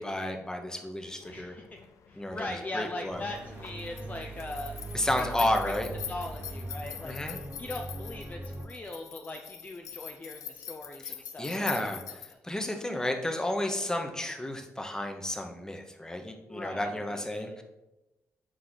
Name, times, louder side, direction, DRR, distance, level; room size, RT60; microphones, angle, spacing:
voice 1, 0.0-1.6 2.1-3.2 4.9-5.9 7.0-7.4 11.0-17.6, left 1 dB, 10° left, 3 dB, 1.0 m, -32 dB
sound 1, 1.2-12.3, left 8 dB, 85° left, 0.5 m, -44 dB
voice 2, 1.3-1.7 2.1-4.8 5.1-5.7 6.1-7.2 7.6-11.9 16.5-17.5, left 2 dB, 30° left, 2 dB, 0.6 m, -40 dB
sound 2, 3.1-8.6, right 2 dB, 35° right, 1.4 m, -41 dB
6.3 x 4.7 x 4.0 m, 0.99 s
cardioid pair, 75°, 5 cm